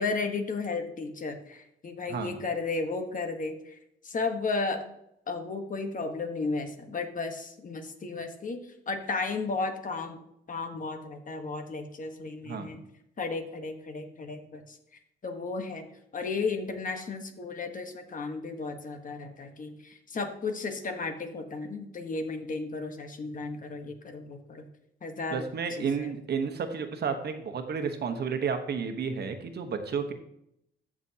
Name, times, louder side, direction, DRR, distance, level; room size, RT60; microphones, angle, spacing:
voice 1, 0.0-3.8 4.0-4.8 5.3-10.2 10.5-12.8 13.2-14.8 15.2-15.8 16.1-24.6 25.0-25.4 25.8-26.1, left 3 dB, 40° left, 6 dB, 1.3 m, -34 dB
voice 2, 25.3-30.1, right 6 dB, 55° right, 6 dB, 1.1 m, -31 dB
13.5 x 6.1 x 2.9 m, 0.78 s
cardioid pair, 90°, 20 cm